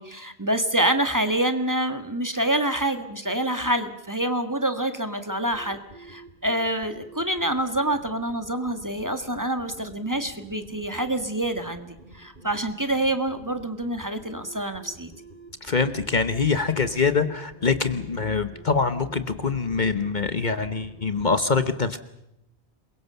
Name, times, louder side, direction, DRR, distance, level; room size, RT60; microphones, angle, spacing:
voice 1, 0.0-15.1, right 1 dB, 15° right, 8 dB, 1.7 m, -27 dB
sound 1, 5.5-21.4, right 2 dB, 50° right, 2.8 m, -48 dB
voice 2, 15.6-22.0, left 4 dB, 45° left, 11 dB, 1.2 m, -24 dB
27.5 x 22.5 x 6.8 m, 0.82 s
omnidirectional pair, 1.1 m